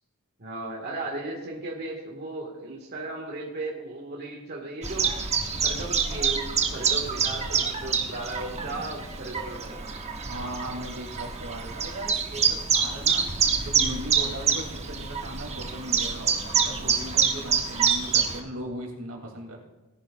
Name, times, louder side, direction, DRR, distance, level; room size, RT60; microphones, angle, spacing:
voice 1, 0.4-5.1 5.6-9.8, right 2 dB, 50° right, -2 dB, 2.0 m, -36 dB
Chirp tweet, 4.8-18.4, right 6 dB, 30° right, 1.1 m, -26 dB
voice 2, 10.3-19.7, right 1 dB, 90° right, -1 dB, 3.3 m, -38 dB
19.0 x 11.0 x 2.6 m, 1.2 s
head